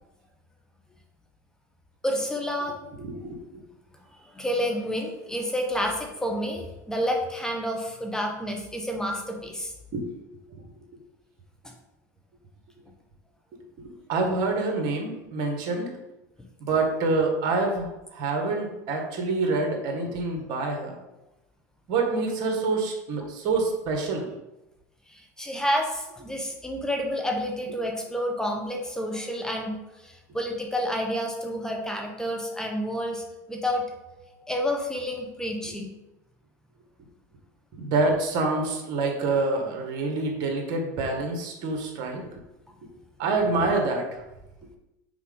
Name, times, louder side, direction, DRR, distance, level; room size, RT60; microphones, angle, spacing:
voice 1, 2.0-2.8 4.3-9.7 11.6-11.7 25.1-29.8 30.0-35.9, equal, 5° left, 1 dB, 1.0 m, -29 dB
voice 2, 3.0-3.4 9.9-10.1 13.5-15.9 16.6-21.0 21.9-24.3 37.7-42.3 43.2-44.2, right 3 dB, 55° right, 2 dB, 1.7 m, -27 dB
5.9 x 4.6 x 3.9 m, 0.95 s
hypercardioid pair, 90°, 9 cm